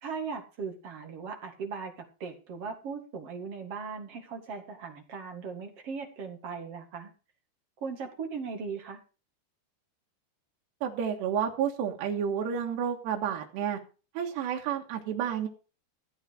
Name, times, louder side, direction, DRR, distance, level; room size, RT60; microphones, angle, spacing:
voice 1, 0.0-7.1 7.8-9.0, right 5 dB, 45° right, 4 dB, 2.3 m, -38 dB
voice 2, 10.8-13.8 14.2-15.5, right 8 dB, 75° right, 1 dB, 3.5 m, -30 dB
14.5 x 9.0 x 4.8 m, 0.34 s
omnidirectional pair, 5.1 m